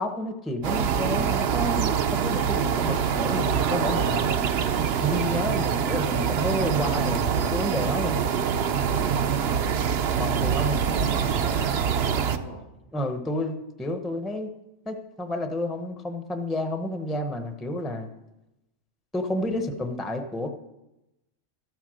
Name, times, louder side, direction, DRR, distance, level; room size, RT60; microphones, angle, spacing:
voice 1, 0.0-4.2 5.0-8.2 10.2-10.7 12.9-14.5 14.9-18.1 19.1-20.5, left 1 dB, ahead, 6 dB, 0.7 m, -30 dB
sound 1, 0.6-12.4, right 7 dB, 60° right, 0.9 m, -25 dB
voice 2, 7.9-8.5 8.9-9.5 10.5-12.6, left 1 dB, 60° left, 2 dB, 2.3 m, -41 dB
13.5 x 9.0 x 6.4 m, 0.96 s
omnidirectional pair, 1.3 m